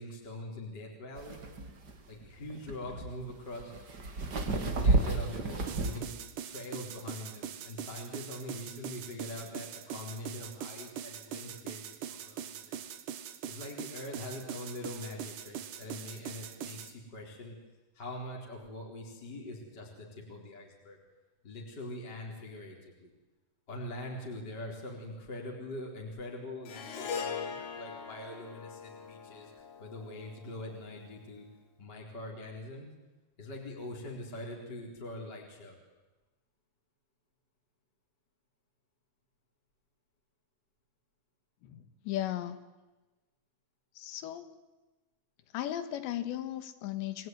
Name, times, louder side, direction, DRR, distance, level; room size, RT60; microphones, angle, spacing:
voice 1, 0.0-1.4 2.1-3.8 4.6-6.1 6.4-12.8 13.5-17.6 17.9-21.0 21.4-23.1 23.7-31.5 31.8-32.9 33.4-35.8, left 1 dB, 20° left, -1 dB, 4.2 m, -43 dB
sound 1, 1.2-6.0, right 2 dB, 50° right, 1.2 m, -31 dB
sound 2, 5.7-16.9, right 9 dB, 65° right, 2.0 m, -42 dB
Harp, 26.6-31.1, left 6 dB, 50° left, 2.8 m, -41 dB
voice 2, 41.6-42.6 44.0-44.5 45.5-47.3, left 12 dB, 75° left, 11 dB, 3.6 m, -36 dB
30.0 x 20.5 x 9.5 m, 1.1 s
omnidirectional pair, 5.6 m